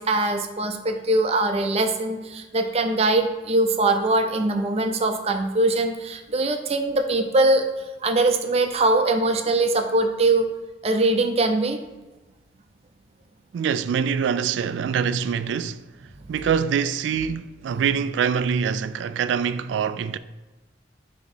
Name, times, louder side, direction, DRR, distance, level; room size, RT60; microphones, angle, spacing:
voice 1, 0.0-7.6 8.0-10.5 10.8-11.8 16.3-16.4, right 2 dB, 35° right, 0.6 m, -22 dB
voice 2, 13.5-15.8 16.3-20.2, right 7 dB, 80° right, 0.3 m, -24 dB
6.0 x 3.0 x 5.4 m
head